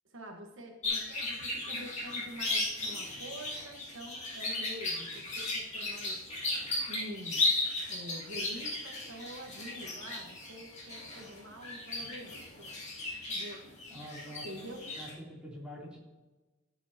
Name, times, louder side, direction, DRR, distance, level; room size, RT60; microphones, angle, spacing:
voice 1, 0.1-6.2 6.9-7.4 7.9-12.7 13.3-15.0, equal, 65° right, 2 dB, 1.4 m, -47 dB
sound 1, 0.8-15.1, left 2 dB, 35° left, 3.0 m, -35 dB
voice 2, 13.9-14.5 14.9-16.0, equal, 5° right, -6 dB, 3.1 m, -45 dB
15.0 x 7.3 x 2.9 m, 1.1 s
head